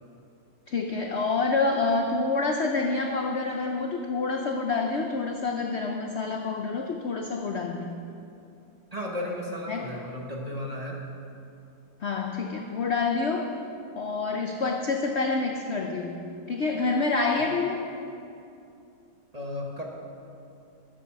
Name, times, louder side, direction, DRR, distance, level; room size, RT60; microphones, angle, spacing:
voice 1, 0.7-8.0 9.7-9.9 12.0-13.5 14.0-17.8, left 3 dB, 60° left, 3 dB, 0.7 m, -27 dB
voice 2, 8.9-11.0 17.3-17.5 19.3-19.8, left 1 dB, 25° right, -1 dB, 1.1 m, -34 dB
13.0 x 11.0 x 4.7 m, 2.6 s
omnidirectional pair, 2.0 m